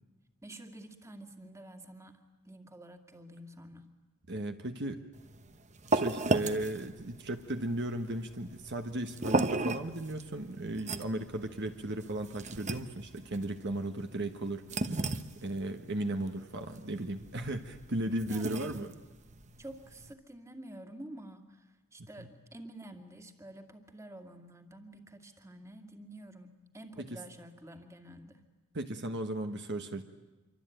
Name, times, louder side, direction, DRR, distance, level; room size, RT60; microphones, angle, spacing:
voice 1, 0.4-2.2 2.4-3.9 18.2-18.5 19.6-28.4, right 1 dB, 15° right, 5 dB, 2.1 m, -49 dB
voice 2, 4.3-5.0 5.9-14.9 15.4-19.0 22.0-22.3 27.0-27.2 28.7-30.0, right 1 dB, 50° right, 6 dB, 1.3 m, -36 dB
sound 1, 5.1-20.1, right 2 dB, 30° right, 1.1 m, -36 dB
26.5 x 24.5 x 9.1 m, 1.1 s
head